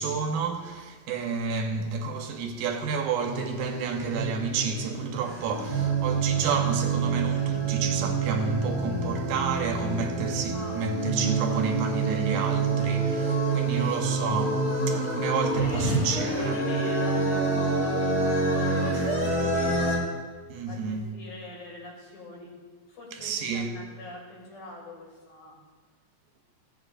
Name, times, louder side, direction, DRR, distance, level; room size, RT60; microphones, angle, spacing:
voice 1, 0.0-16.6 20.5-21.1 23.1-23.7, right 5 dB, 85° right, 2.5 m, -30 dB
sound 1, 3.2-20.0, right 3 dB, 35° left, 1.3 m, -27 dB
voice 2, 7.3-7.7 10.4-10.7 13.6-14.1 15.3-19.9 20.7-22.5 22.9-25.6, left 2 dB, 85° left, 4.5 m, -43 dB
15.5 x 7.6 x 2.5 m
omnidirectional pair, 4.0 m